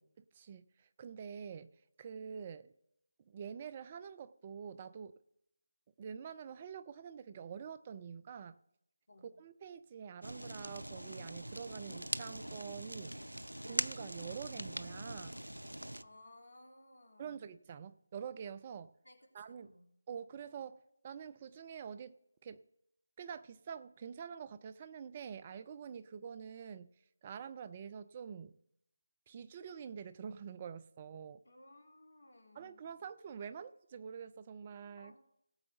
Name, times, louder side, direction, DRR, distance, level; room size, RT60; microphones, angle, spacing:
voice 1, 0.2-1.7 2.0-2.7 3.3-5.1 6.0-8.6 9.4-13.1 13.6-15.3 17.2-18.9 19.3-19.7 20.1-22.1 22.4-22.6 23.2-26.9 27.2-28.6 29.3-31.4 32.5-35.1, right 7 dB, 25° right, 13 dB, 0.4 m, -46 dB
Fire, 10.2-16.0, right 1 dB, 85° right, 0.6 m, -42 dB
voice 2, 16.0-17.4 19.0-19.9 31.4-32.8 35.0-35.2, left 1 dB, 60° left, 2 dB, 2.6 m, -59 dB
18.0 x 7.7 x 3.9 m, 0.78 s
figure-of-eight pair, 160°, 0 cm